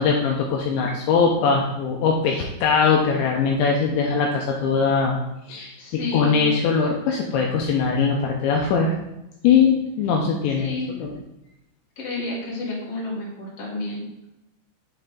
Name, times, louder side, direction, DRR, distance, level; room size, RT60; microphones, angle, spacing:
voice 1, 0.0-5.2 5.5-9.0 9.4-11.1, left 5 dB, 85° left, 0 dB, 2.6 m, -21 dB
voice 2, 5.8-6.5 10.6-10.9 12.0-14.0, left 2 dB, 45° left, -5 dB, 2.1 m, -30 dB
7.3 x 5.6 x 3.8 m, 0.90 s
omnidirectional pair, 6.0 m